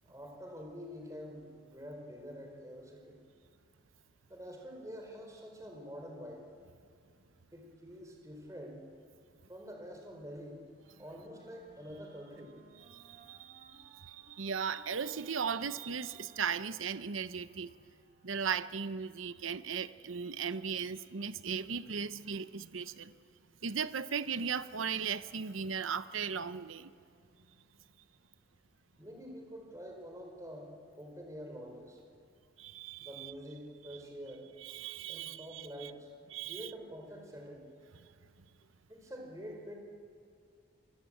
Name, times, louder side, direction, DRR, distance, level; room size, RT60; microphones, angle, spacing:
voice 1, 0.1-3.2 4.3-6.4 7.5-8.8 9.5-10.6 11.0-12.5 29.0-32.0 33.0-34.5 35.1-36.1 36.5-37.7 38.9-39.8, equal, 15° right, 1 dB, 4.1 m, -47 dB
Wind instrument woodwind instrument, 10.7-18.8, right 1 dB, 40° right, 6.5 m, -62 dB
voice 2, 12.9-17.7 18.2-23.1 23.6-26.9 32.6-33.3 34.6-35.9 36.3-36.7, right 6 dB, 90° right, 13 dB, 0.8 m, -37 dB
27.5 x 24.0 x 8.6 m, 2.2 s
head